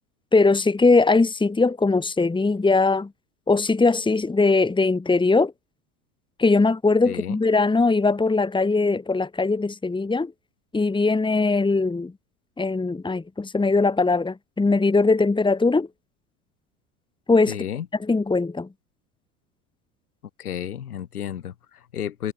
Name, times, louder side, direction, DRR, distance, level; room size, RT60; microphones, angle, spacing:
voice 1, 0.3-3.1 3.5-5.5 6.4-10.3 10.7-12.1 12.6-15.9 17.3-17.6 18.0-18.7, left 3 dB, 10° left, 2.9 m, -20 dB
voice 2, 7.0-7.4 17.5-17.9 20.4-22.3, left 9 dB, 75° left, 7.7 m, -32 dB
figure-of-eight pair, 75°, 45 cm